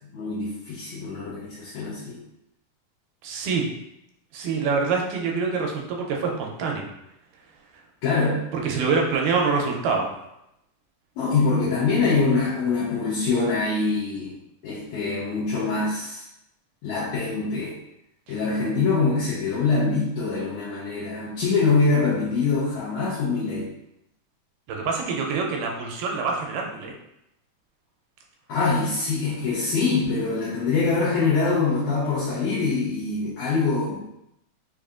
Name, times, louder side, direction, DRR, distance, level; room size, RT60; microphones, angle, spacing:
voice 1, 0.1-2.2 8.0-8.4 11.2-14.4 14.6-16.3 16.8-17.7 18.3-23.7 28.5-34.1, left 4 dB, 75° left, -8 dB, 1.8 m, -24 dB
voice 2, 3.2-3.7 4.3-6.9 8.6-10.1 18.3-18.4 24.7-27.0, right 4 dB, 85° right, 0 dB, 2.1 m, -25 dB
5.3 x 2.4 x 2.4 m, 0.83 s
omnidirectional pair, 3.7 m